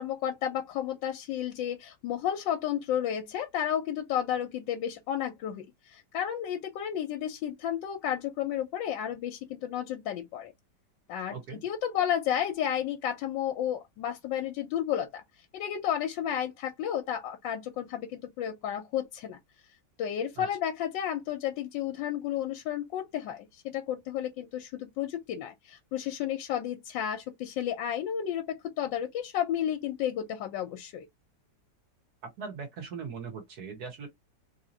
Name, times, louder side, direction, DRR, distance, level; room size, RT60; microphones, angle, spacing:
voice 1, 0.0-10.5 11.1-15.2 15.5-19.4 20.0-31.1, left 10 dB, 85° left, 1.3 m, -32 dB
voice 2, 11.3-11.6 20.4-20.5 32.4-34.1, right 5 dB, 60° right, 1.7 m, -40 dB
3.5 x 2.8 x 2.7 m
omnidirectional pair, 2.0 m